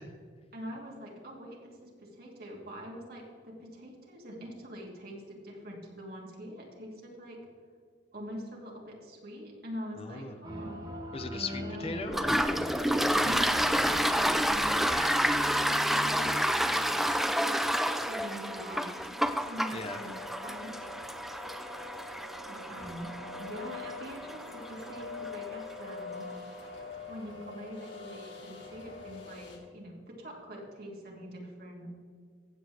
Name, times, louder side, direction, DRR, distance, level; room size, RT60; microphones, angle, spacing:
voice 1, 0.5-7.4 8.1-10.8 11.6-11.9 13.1-17.6 17.9-21.2 21.5-22.0 22.4-23.1 23.4-26.3 27.1-31.9, equal, 55° right, -2 dB, 2.7 m, -44 dB
voice 2, 10.0-10.3 11.1-12.4 19.7-20.0, left 3 dB, 35° left, 9 dB, 0.7 m, -38 dB
Meandering loop re-mix, 10.4-17.0, left 1 dB, 25° right, 3.2 m, -41 dB
Toilet flush, 12.1-25.5, equal, ahead, 0.4 m, -29 dB
sound 1, 19.5-29.6, left 4 dB, 85° left, 2.6 m, -44 dB
15.5 x 8.0 x 3.5 m, 2.1 s
head